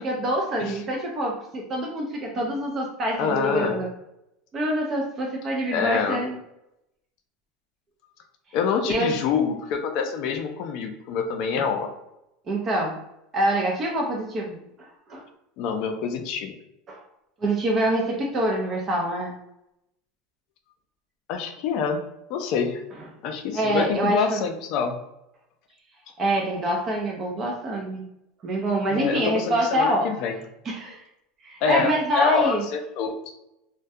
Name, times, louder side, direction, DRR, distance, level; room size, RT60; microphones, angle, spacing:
voice 1, 0.0-3.9 4.5-6.4 8.9-9.2 12.5-13.0 13.3-15.2 16.9-17.0 17.4-19.3 23.5-24.4 26.2-28.0 28.4-30.1 30.6-31.0 31.4-32.6, right 1 dB, 35° right, -1 dB, 0.4 m, -26 dB
voice 2, 3.2-3.8 5.7-6.2 8.5-11.9 15.6-16.5 21.3-22.0 22.3-22.8 23.2-24.9 28.9-30.4 31.6-33.3, left 6 dB, 60° left, 5 dB, 0.4 m, -26 dB
2.3 x 2.1 x 2.6 m, 0.84 s
supercardioid pair, 125°, 0 cm